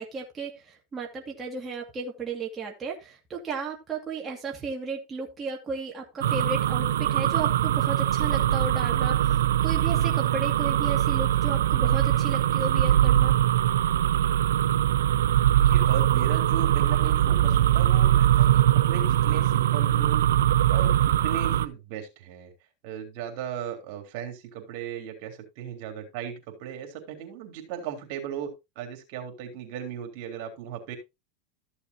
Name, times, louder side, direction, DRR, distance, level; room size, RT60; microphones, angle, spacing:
voice 1, 0.0-13.3, right 4 dB, 20° right, -1 dB, 2.4 m, -34 dB
sound 1, 6.2-21.7, right 12 dB, 90° right, 0.6 m, -22 dB
voice 2, 15.5-20.2 20.7-22.5 22.8-28.5 28.8-31.0, right 9 dB, 60° right, 5 dB, 3.5 m, -37 dB
14.0 x 7.0 x 2.9 m, 0.23 s
supercardioid pair, 120°, 0 cm